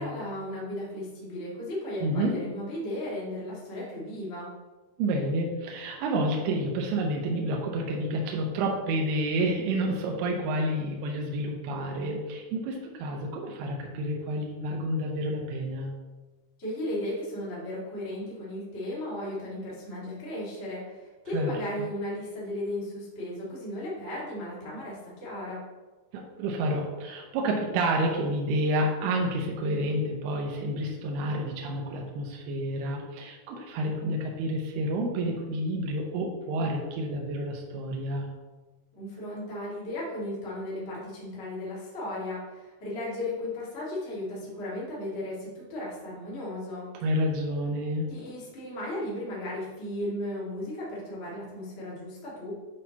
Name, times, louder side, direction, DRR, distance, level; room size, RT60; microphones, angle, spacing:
voice 1, 0.0-4.5 16.6-25.6 39.0-46.9 48.1-52.5, left 1 dB, 70° left, -7 dB, 0.6 m, -35 dB
voice 2, 2.0-2.3 5.0-15.9 21.3-21.5 26.1-38.3 47.0-48.1, right 1 dB, 80° right, 0 dB, 2.6 m, -29 dB
8.4 x 4.3 x 2.8 m, 1.2 s
omnidirectional pair, 4.6 m